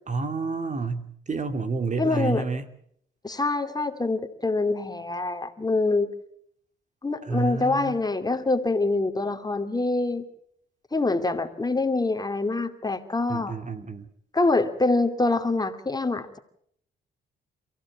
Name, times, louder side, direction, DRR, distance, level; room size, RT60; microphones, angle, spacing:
voice 1, 0.1-2.6 7.3-7.9 13.3-14.1, right 4 dB, 35° right, 9 dB, 2.4 m, -29 dB
voice 2, 2.0-2.5 3.2-6.1 7.0-10.2 10.9-13.5 14.3-16.4, left 3 dB, 20° left, 7 dB, 2.6 m, -25 dB
29.5 x 15.5 x 8.6 m, 0.70 s
cardioid pair, 80°, 21 cm